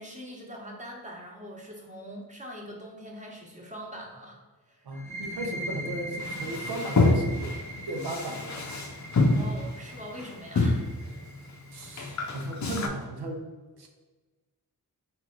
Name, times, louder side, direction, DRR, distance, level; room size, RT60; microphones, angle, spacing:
voice 1, 0.0-4.4 4.7-4.9 9.3-10.8 11.4-11.5, equal, 20° right, -2 dB, 1.1 m, -42 dB
voice 2, 4.8-7.6 7.9-8.6 11.7-13.5 13.8-13.9, right 1 dB, 85° right, 3 dB, 0.8 m, -36 dB
sound 1, 4.9-12.4, right 1 dB, 5° left, 0.7 m, -40 dB
Male speech man speaking, 6.2-12.9, left 2 dB, 45° left, 0.6 m, -27 dB
4.4 x 3.2 x 3.8 m, 1.3 s
wide cardioid pair, 90°, 38 cm